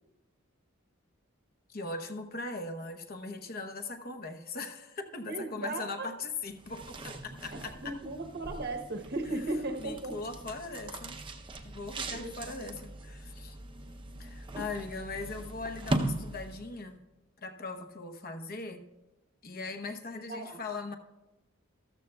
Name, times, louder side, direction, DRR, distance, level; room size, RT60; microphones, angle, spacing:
voice 1, 1.7-8.0 9.8-11.2 11.6-13.6 14.2-17.0 17.4-18.8 19.4-20.9, left 3 dB, 45° left, 7 dB, 0.9 m, -40 dB
voice 2, 5.3-6.1 7.8-10.2 12.1-12.2 20.3-20.6, right 2 dB, 50° right, 4 dB, 0.9 m, -36 dB
sound 1, 6.5-16.9, right 2 dB, 25° right, 0.6 m, -39 dB
13.5 x 13.5 x 2.3 m, 1.1 s
head